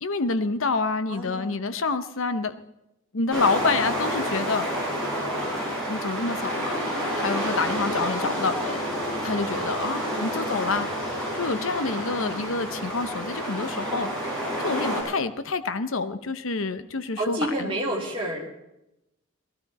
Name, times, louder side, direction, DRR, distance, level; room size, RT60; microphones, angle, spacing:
voice 1, 0.0-2.6 3.1-4.7 5.9-6.8 7.2-8.8 9.2-10.9 11.3-17.7, left 4 dB, 65° left, 11 dB, 0.8 m, -27 dB
voice 2, 1.1-1.7 10.1-10.4 11.9-12.4 17.2-18.4, right 1 dB, 25° right, -4 dB, 3.0 m, -30 dB
sound 1, 3.3-15.0, equal, 5° left, 5.2 m, -29 dB
18.5 x 12.5 x 4.2 m, 0.89 s
head